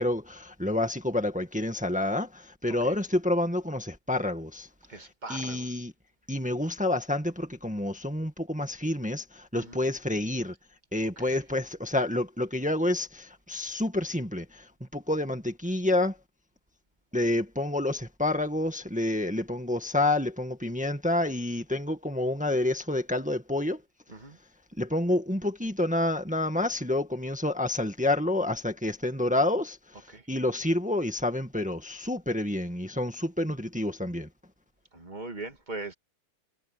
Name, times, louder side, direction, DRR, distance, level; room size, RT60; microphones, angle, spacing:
voice 1, 0.0-4.7 5.3-5.9 6.3-10.5 10.9-16.1 17.1-23.8 24.8-29.8 30.3-34.3, left 1 dB, 5° right, 1.6 m, -28 dB
voice 2, 4.9-5.7 9.5-9.8 11.2-11.4 24.1-24.4 30.1-30.3 34.9-35.9, right 3 dB, 25° right, 2.3 m, -41 dB
omnidirectional pair, 1.9 m